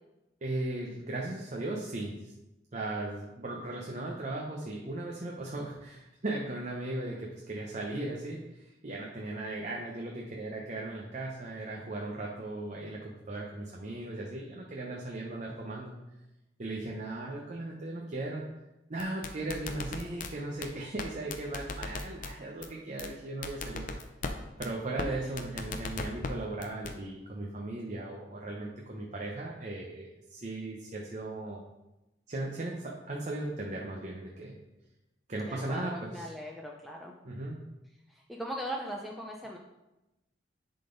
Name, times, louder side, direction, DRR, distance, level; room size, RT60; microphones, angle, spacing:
voice 1, 0.4-2.3 2.7-16.0 16.6-18.4 18.9-23.9 24.6-31.6 32.3-34.6 35.3-36.3 37.2-37.6, right 2 dB, 40° right, -2 dB, 0.8 m, -37 dB
sound 1, 19.0-20.3 20.6-20.7 21.0-21.1 21.3-22.3 22.6-22.7 23.0-23.1 23.4-24.3 24.6-24.7 25.0-25.1 25.4-26.3 26.6-26.9, left 4 dB, 45° left, 0.6 m, -36 dB
voice 2, 25.0-25.3 35.5-37.1 38.1-39.6, equal, ahead, -1 dB, 0.5 m, -40 dB
10.5 x 3.9 x 3.9 m, 0.98 s
head